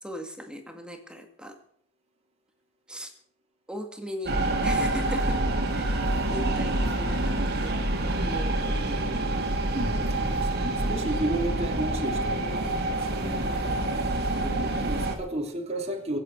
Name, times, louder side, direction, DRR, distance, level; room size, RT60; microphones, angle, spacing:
voice 1, 0.0-1.6 2.9-3.1 3.7-7.7 8.2-9.1 13.3-13.9, equal, 5° right, 4 dB, 2.0 m, -39 dB
sound 1, 4.3-15.2, right 1 dB, 50° right, 2.9 m, -27 dB
voice 2, 9.7-13.4 14.4-16.2, right 1 dB, 30° right, 1 dB, 3.0 m, -33 dB
24.0 x 8.8 x 6.3 m, 0.65 s
head